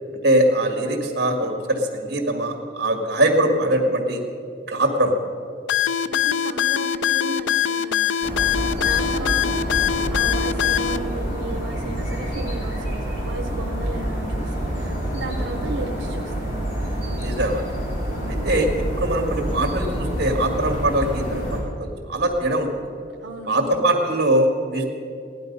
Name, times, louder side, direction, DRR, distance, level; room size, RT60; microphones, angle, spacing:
voice 1, 0.2-4.2 4.7-5.1 17.2-17.7 18.3-18.7 19.0-22.9 23.5-24.9, right 1 dB, 60° right, 4 dB, 1.9 m, -22 dB
sound 1, 5.7-11.0, left 9 dB, 75° left, 0.4 m, -22 dB
voice 2, 6.1-16.5 18.1-18.5 23.2-23.8, right 3 dB, 80° right, 2 dB, 0.8 m, -35 dB
sound 2, 8.2-21.6, equal, 45° left, 3.3 m, -27 dB
16.5 x 11.5 x 5.4 m, 2.5 s
head